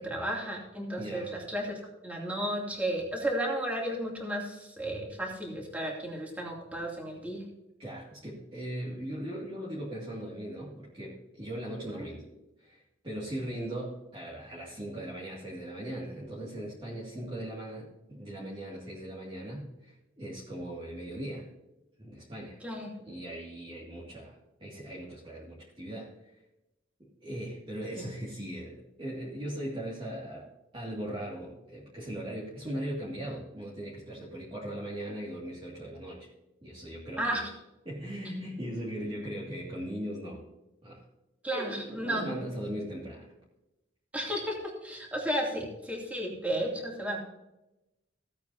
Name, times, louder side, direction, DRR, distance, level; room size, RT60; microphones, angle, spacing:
voice 1, 0.0-1.8 2.0-7.4 11.9-12.1 22.6-22.9 28.0-28.1 37.2-37.5 41.4-42.3 44.1-44.5 44.8-47.2, right 1 dB, 10° right, -2 dB, 2.6 m, -33 dB
voice 2, 1.0-1.4 7.8-12.2 12.6-21.5 22.0-22.6 23.1-26.3 27.0-36.3 36.6-37.4 37.9-40.4 40.8-41.0 41.5-43.3, right 1 dB, 25° right, -6 dB, 2.3 m, -39 dB
16.0 x 8.8 x 2.8 m, 0.95 s
head